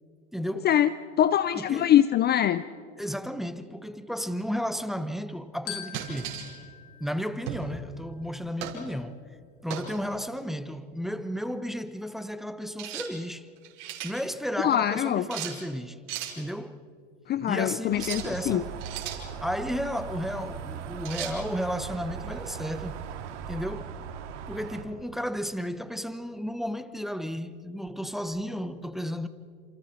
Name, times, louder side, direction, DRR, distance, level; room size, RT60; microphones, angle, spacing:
voice 1, 0.3-0.7 1.5-1.9 3.0-6.4 7.0-9.2 9.6-13.5 14.0-16.0 16.4-16.9 17.5-18.8 19.4-23.0 23.5-24.0 24.5-29.3, equal, ahead, 0.8 m, -33 dB
voice 2, 1.2-2.6 14.6-15.2 17.3-18.6, left 11 dB, 30° left, 0.5 m, -23 dB
Glockenspiel, 5.7-8.1, left 10 dB, 75° left, 2.3 m, -43 dB
sound 1, 5.9-6.5 7.5-7.7 8.6-8.8 9.7-10.0 12.8-13.1 13.6-14.1 15.3-15.6 16.1-16.4 17.9-18.3 18.8-19.2 21.1-21.4, right 10 dB, 60° right, 5.0 m, -36 dB
sound 2, 17.9-24.8, right 8 dB, 80° right, 2.2 m, -39 dB
29.0 x 27.5 x 4.4 m
hypercardioid pair, 110°, 35 cm